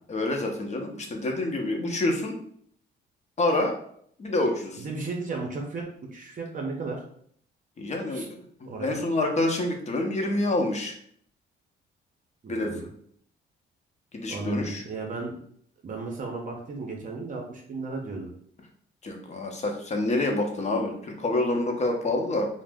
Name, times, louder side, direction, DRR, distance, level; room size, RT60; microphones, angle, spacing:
voice 1, 0.1-2.4 3.4-3.8 4.2-4.9 7.8-10.9 12.5-12.8 14.1-14.8 19.0-22.5, left 2 dB, 35° left, 2 dB, 0.6 m, -27 dB
voice 2, 4.8-7.0 8.1-8.3 8.7-9.0 12.4-12.8 14.3-15.4 15.8-18.3, right 3 dB, 40° right, 0 dB, 0.6 m, -34 dB
2.5 x 2.0 x 3.4 m, 0.63 s
cardioid pair, 90°, 20 cm